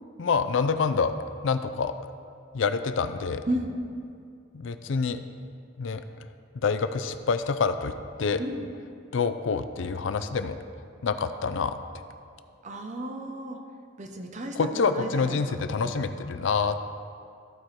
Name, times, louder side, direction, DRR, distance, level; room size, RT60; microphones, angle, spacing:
voice 1, 0.2-1.1 1.4-1.9 2.5-3.5 4.5-5.2 5.8-6.0 6.5-7.9 8.2-8.4 9.1-10.6 11.0-11.8 14.6-16.8, left 5 dB, 70° left, 10 dB, 0.4 m, -26 dB
voice 2, 3.5-3.8 8.4-8.7 12.6-13.6 14.0-15.6 16.2-16.3, right 1 dB, 40° right, 3 dB, 0.8 m, -33 dB
14.0 x 4.7 x 4.4 m, 2.3 s
head